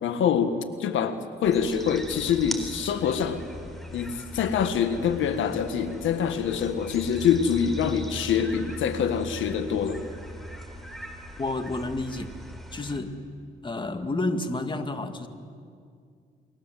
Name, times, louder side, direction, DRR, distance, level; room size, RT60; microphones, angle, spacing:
voice 1, 0.0-3.4 3.9-10.1, left 7 dB, 75° left, 9 dB, 1.6 m, -25 dB
sound 1, 1.4-13.0, equal, ahead, 4.0 m, -40 dB
voice 2, 11.4-12.3 12.7-13.1 13.6-15.3, left 2 dB, 25° left, 7 dB, 2.2 m, -30 dB
29.0 x 23.0 x 7.7 m, 2.3 s
cardioid pair, 90°, 20 cm